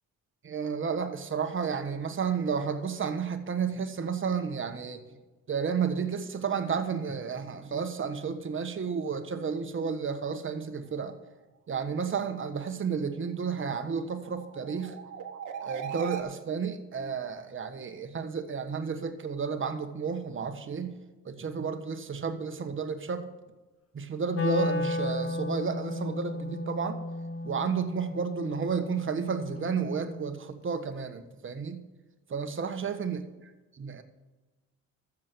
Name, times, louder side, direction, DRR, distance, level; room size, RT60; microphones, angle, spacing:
voice 1, 0.4-5.0 5.5-11.2 11.7-15.0 15.6-20.9 21.2-23.3 23.9-27.0 27.4-31.8 32.3-33.2 33.7-34.0, right 6 dB, 40° right, 8 dB, 1.5 m, -32 dB
sound 1, 14.0-16.2, right 7 dB, 90° right, 1.4 m, -39 dB
Wind instrument woodwind instrument, 24.3-30.4, left 2 dB, 50° left, 1.7 m, -34 dB
13.5 x 7.5 x 6.2 m, 1.1 s
cardioid pair, 90°, 30 cm